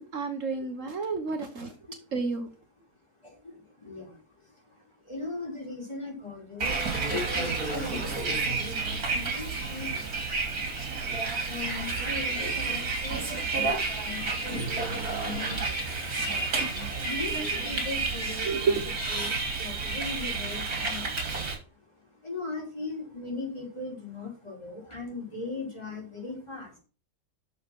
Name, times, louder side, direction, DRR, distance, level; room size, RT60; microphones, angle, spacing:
voice 1, 0.1-1.7 2.1-2.5 16.6-16.7 18.4-18.9, right 4 dB, 60° right, 6 dB, 1.5 m, -30 dB
voice 2, 3.2-4.2 5.0-10.5 11.4-13.7 14.0-16.0 17.0-18.8 19.1-21.1 22.2-26.7, left 3 dB, 20° left, -2 dB, 4.6 m, -39 dB
Bus, 6.6-21.6, right 3 dB, 75° right, 3.3 m, -30 dB
8.6 x 6.7 x 6.0 m, 0.35 s
omnidirectional pair, 1.6 m